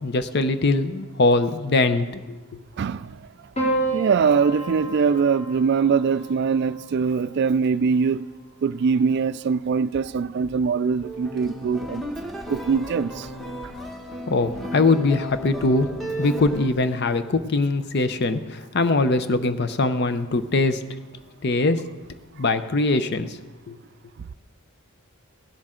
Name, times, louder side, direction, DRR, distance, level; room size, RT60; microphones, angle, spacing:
voice 1, 0.0-2.4 14.3-15.9 16.2-20.8 21.4-21.8 22.4-23.3 23.7-23.8, left 3 dB, 50° left, 0.6 m, -22 dB
voice 2, 2.8-3.2 3.9-8.2 8.6-12.0 12.5-13.3, right 5 dB, 50° right, 0.3 m, -22 dB
Piano, 3.6-8.0 9.2-9.9, right 2 dB, 30° left, 3.2 m, -31 dB
sound 1, 11.0-16.7, equal, ahead, 1.1 m, -34 dB
16.5 x 11.5 x 3.7 m
head